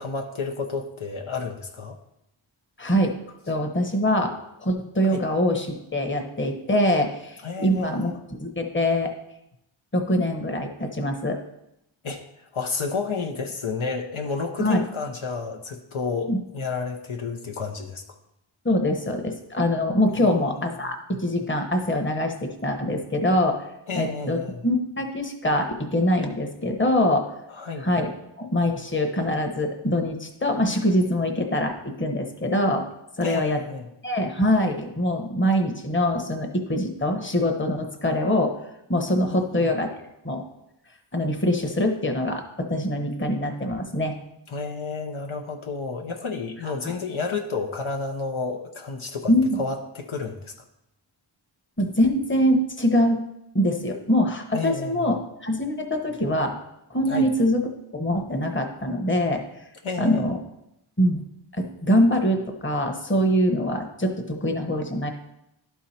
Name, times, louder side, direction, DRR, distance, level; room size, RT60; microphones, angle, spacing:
voice 1, 0.0-2.0 5.1-5.2 7.4-8.1 12.0-18.0 20.2-20.3 23.9-24.7 27.5-27.9 33.2-33.9 39.3-39.7 44.5-50.5 54.5-55.1 57.1-57.3 59.8-60.3, left 4 dB, 75° left, 3 dB, 0.9 m, -31 dB
voice 2, 2.8-3.1 3.5-4.3 4.6-9.1 9.9-11.4 14.6-14.8 16.3-16.4 18.6-23.7 23.9-27.3 27.8-28.1 28.4-32.9 33.2-33.6 34.0-38.6 38.9-40.0 40.2-40.4 41.1-44.1 49.3-49.6 51.8-53.2 53.5-56.6 56.9-57.6 57.9-59.4 60.0-60.4 61.0-61.2 61.5-65.1, left 1 dB, 25° left, 3 dB, 1.1 m, -24 dB
11.5 x 4.7 x 4.3 m, 0.83 s
wide cardioid pair, 60°, 49 cm